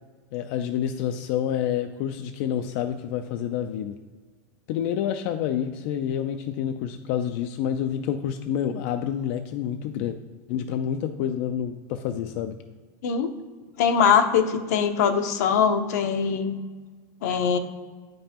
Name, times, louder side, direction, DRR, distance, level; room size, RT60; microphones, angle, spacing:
voice 1, 0.3-3.9 4.7-10.2 10.5-12.6, left 9 dB, 45° left, 7 dB, 0.3 m, -28 dB
voice 2, 13.8-16.6 17.2-17.6, left 7 dB, 70° left, 7 dB, 0.7 m, -22 dB
8.8 x 5.3 x 2.9 m, 1.5 s
supercardioid pair, 170°, 9 cm